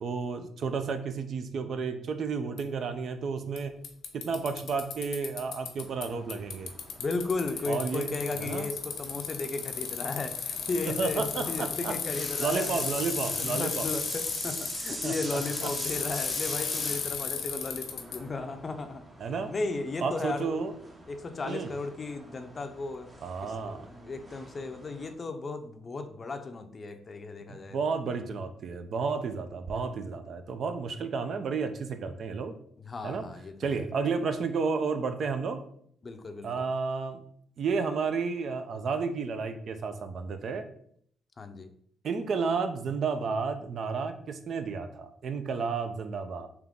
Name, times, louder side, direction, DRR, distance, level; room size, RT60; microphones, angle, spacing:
voice 1, 0.0-3.8 4.1-6.7 7.7-8.1 8.3-8.7 10.9-12.0 12.4-13.9 15.0-15.7 19.2-19.5 20.0-20.7 21.4-21.7 23.2-23.9 27.5-32.5 33.0-33.3 33.6-35.6 36.4-37.2 37.6-40.6 42.0-46.5, right 5 dB, 60° right, 8 dB, 0.4 m, -32 dB
Bicycle, 2.6-2.7 3.6-3.7 3.8-6.0 6.3-18.2, left 7 dB, 75° left, 0.7 m, -34 dB
sound 1, 5.8-25.1, right 1 dB, 25° right, 0.8 m, -43 dB
voice 2, 7.0-12.8 13.4-19.0 19.5-20.6 21.1-23.1 23.4-27.8 32.8-33.6 36.0-36.6 41.4-41.7, left 3 dB, 35° left, 7 dB, 0.5 m, -35 dB
3.6 x 2.9 x 3.6 m, 0.65 s
cardioid pair, 90°, 0 cm